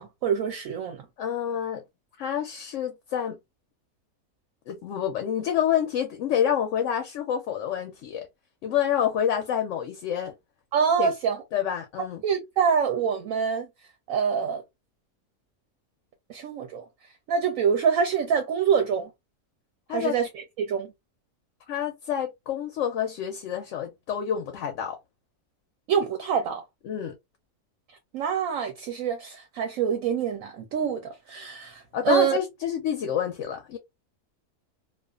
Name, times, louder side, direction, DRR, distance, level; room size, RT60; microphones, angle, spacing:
voice 1, 0.0-1.0 10.7-11.4 12.2-13.7 14.1-14.6 16.3-16.8 17.3-19.1 19.9-20.9 25.9-26.6 27.9-32.4, right 7 dB, 70° right, 0.9 m, -26 dB
voice 2, 1.2-1.8 2.2-3.4 4.7-8.3 8.6-10.3 11.0-11.1 11.5-12.2 19.9-20.2 21.7-25.0 26.9-27.1 31.9-33.8, left 9 dB, 65° left, 0.8 m, -28 dB
2.4 x 2.4 x 2.3 m
omnidirectional pair, 1.6 m